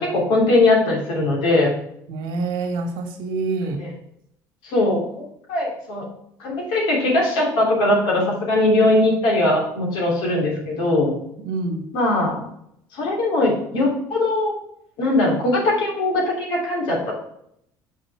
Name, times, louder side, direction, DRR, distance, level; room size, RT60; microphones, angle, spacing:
voice 1, 0.0-1.7 3.8-3.9 4.6-5.0 5.5-6.0 6.4-11.1 11.9-12.4 12.9-14.5 15.0-17.1, left 2 dB, 80° left, -2 dB, 3.0 m, -20 dB
voice 2, 2.1-3.8 11.4-11.8, right 3 dB, 85° right, 4 dB, 1.6 m, -26 dB
6.5 x 5.6 x 4.6 m, 0.74 s
cardioid pair, 95°, 8 cm